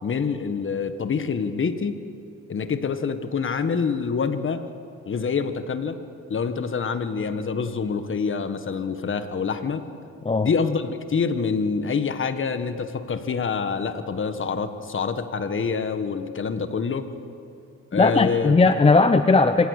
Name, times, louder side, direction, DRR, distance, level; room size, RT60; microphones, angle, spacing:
voice 1, 0.0-1.9 2.5-4.7 5.1-6.0 6.3-9.8 10.4-17.1 17.9-18.5, left 5 dB, 40° left, 10 dB, 1.6 m, -26 dB
voice 2, 17.9-19.7, left 3 dB, 20° left, 10 dB, 0.7 m, -18 dB
26.5 x 18.5 x 6.6 m, 2.6 s
cardioid pair, 90°, 30 cm